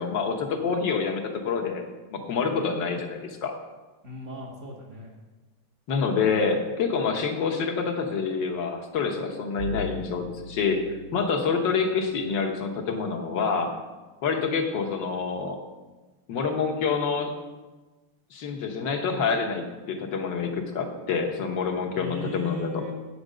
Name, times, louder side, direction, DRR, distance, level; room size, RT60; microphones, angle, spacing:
voice 1, 0.0-1.8 2.1-3.6 5.9-13.7 14.2-15.6 16.3-17.3 18.3-22.8, left 5 dB, 60° left, 2 dB, 1.6 m, -27 dB
voice 2, 4.0-5.2 21.9-22.9, left 1 dB, 40° right, -3 dB, 1.2 m, -37 dB
Bowed string instrument, 9.6-12.6, right 1 dB, 60° right, 0.7 m, -40 dB
8.5 x 6.2 x 6.6 m, 1.2 s
omnidirectional pair, 2.4 m